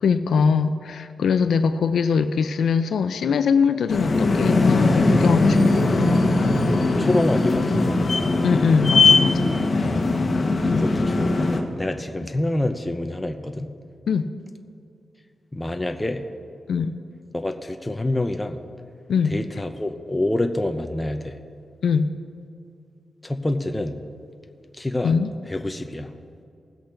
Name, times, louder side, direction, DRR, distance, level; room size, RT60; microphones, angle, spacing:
voice 1, 0.0-5.7 8.4-9.9 10.7-10.8 14.1-14.3 16.7-16.9 19.1-19.4 21.8-22.1 25.0-25.3, left 6 dB, 85° left, 10 dB, 0.4 m, -22 dB
sound 1, 3.9-11.6, left 3 dB, 45° left, 1.2 m, -20 dB
voice 2, 6.7-8.0 9.8-10.1 10.6-13.7 15.5-16.2 17.3-18.6 19.2-21.4 23.2-24.0 24.7-25.1 25.5-26.1, left 1 dB, 15° left, 6 dB, 0.6 m, -27 dB
19.5 x 7.9 x 3.8 m, 2.4 s
wide cardioid pair, 100°, 0 cm